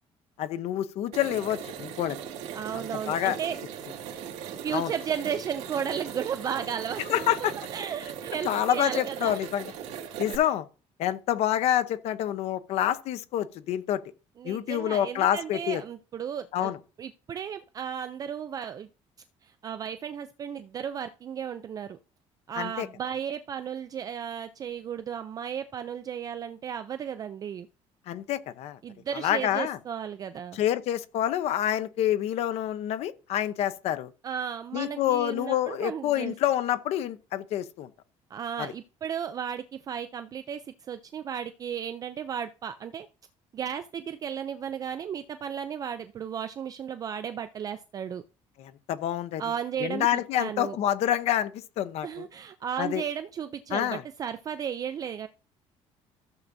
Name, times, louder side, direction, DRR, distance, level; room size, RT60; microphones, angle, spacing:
voice 1, 0.4-2.2 2.7-3.4 4.7-4.9 7.1-7.5 8.4-9.7 10.2-10.7 11.0-14.0 14.4-15.8 16.5-16.8 22.6-22.9 28.1-28.8 29.1-29.8 30.5-34.1 34.7-37.9 38.6-38.7 48.6-49.4 49.8-52.3 52.8-53.0 53.7-54.0, left 11 dB, 60° left, 0.8 m, -27 dB
sound 1, 1.1-10.4, right 8 dB, 70° right, 2.1 m, -39 dB
voice 2, 2.5-3.6 4.1-4.2 4.6-9.5 14.4-16.7 17.0-18.9 19.4-22.0 22.5-27.7 28.8-30.6 34.2-36.3 38.3-43.1 43.5-48.2 49.4-50.1 50.4-50.8 52.0-55.3, right 8 dB, 30° right, 0.4 m, -34 dB
14.5 x 7.1 x 2.7 m
cardioid pair, 170°, 12 cm